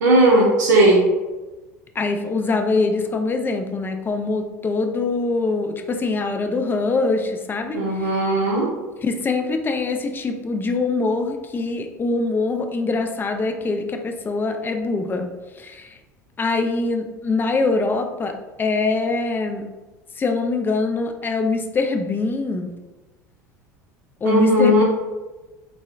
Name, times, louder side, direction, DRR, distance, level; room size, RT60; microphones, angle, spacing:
voice 1, 0.0-1.1 7.7-8.7 24.2-24.8, right 1 dB, 75° right, -4 dB, 0.5 m, -16 dB
voice 2, 2.0-8.2 9.0-15.3 15.6-16.0 16.4-19.7 20.2-22.7 24.2-24.8, left 3 dB, 20° left, 5 dB, 0.3 m, -23 dB
3.6 x 2.0 x 2.4 m, 1.2 s
hypercardioid pair, 75°, 10 cm